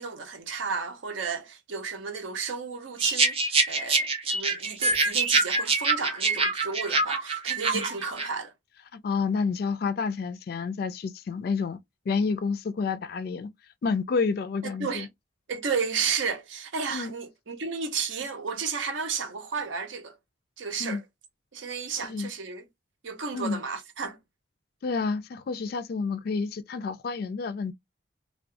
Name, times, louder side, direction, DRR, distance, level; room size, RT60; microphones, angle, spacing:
voice 1, 0.0-8.5 14.6-15.1 15.5-20.2 20.6-21.0 21.5-22.6 23.0-24.2, right 5 dB, 75° right, 0.6 m, -32 dB
sound 1, 3.0-8.3, right 3 dB, 30° right, 0.5 m, -25 dB
voice 2, 8.9-11.8 12.1-13.5 13.8-15.1 16.9-17.1 20.8-21.0 22.0-22.3 23.3-23.6 24.8-27.7, left 4 dB, 50° left, 0.3 m, -29 dB
2.3 x 2.2 x 2.6 m
head